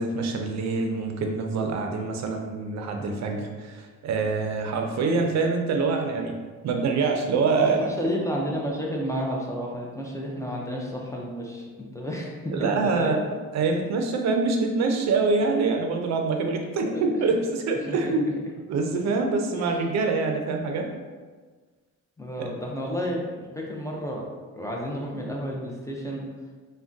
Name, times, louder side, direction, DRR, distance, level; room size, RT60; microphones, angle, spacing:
voice 1, 0.0-6.4 6.6-7.9 12.5-13.2 13.5-18.3 18.7-20.9 22.4-22.5, right 4 dB, 65° right, 3 dB, 0.5 m, -25 dB
voice 2, 7.6-13.2 16.9-17.1 17.9-18.1 22.2-24.3 24.5-26.2, equal, 10° left, -2 dB, 0.4 m, -31 dB
3.4 x 2.1 x 2.6 m, 1.4 s
cardioid pair, 90°, 30 cm